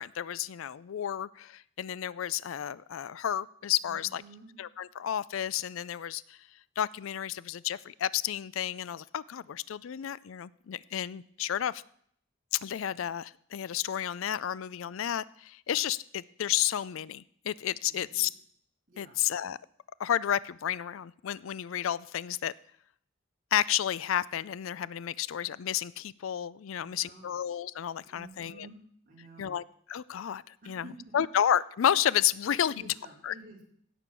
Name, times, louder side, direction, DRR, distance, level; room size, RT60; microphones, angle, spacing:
voice 1, 0.0-4.2 4.6-6.4 6.8-11.8 12.5-18.3 19.0-19.6 20.0-22.5 23.5-28.7 29.4-30.8 31.1-32.9 33.2-33.3, left 10 dB, 80° left, 20 dB, 0.4 m, -31 dB
voice 2, 3.8-4.5 17.9-18.3 18.9-19.2 26.7-27.3 28.0-28.8 29.1-29.5 30.6-31.2 32.7-33.6, right 2 dB, 45° right, -2 dB, 3.8 m, -51 dB
16.5 x 7.0 x 6.2 m, 0.65 s
head